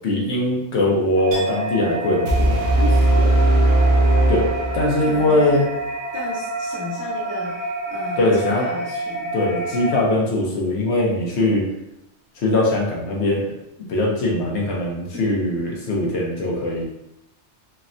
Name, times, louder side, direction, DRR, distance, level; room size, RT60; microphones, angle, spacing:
voice 1, 0.0-2.6 4.3-4.4 4.7-5.7 8.2-8.7 9.3-11.6 12.4-13.4 13.9-16.8, left 1 dB, 75° left, -2 dB, 1.0 m, -21 dB
sound 1, 1.1-10.0, right 2 dB, 55° left, 0.6 m, -28 dB
Chink clink, 1.3-9.0 9.3-10.0, right 1 dB, 80° right, 1.6 m, -43 dB
sound 2, 2.3-5.2, right 2 dB, 60° right, 0.8 m, -18 dB
voice 2, 2.8-3.5 4.0-4.3 4.8-5.7 6.1-9.3 15.1-15.3, left 1 dB, 15° right, -7 dB, 0.4 m, -33 dB
3.4 x 2.1 x 2.5 m, 0.86 s
omnidirectional pair, 1.2 m